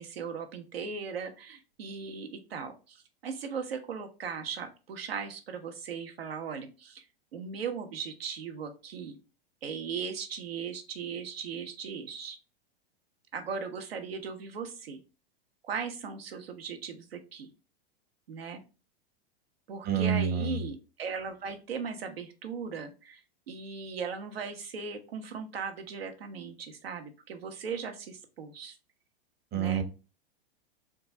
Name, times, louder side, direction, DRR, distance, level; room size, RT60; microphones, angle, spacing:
voice 1, 0.0-7.0 7.3-9.2 9.6-12.4 13.3-15.0 15.6-17.5 18.3-18.6 19.7-23.2 23.5-28.7 29.5-29.8, right 6 dB, 80° right, 6 dB, 0.9 m, -38 dB
voice 2, 19.9-20.6 29.5-29.8, right 7 dB, 35° right, 7 dB, 0.9 m, -27 dB
3.8 x 2.4 x 3.8 m, 0.32 s
hypercardioid pair, 100°, 30 cm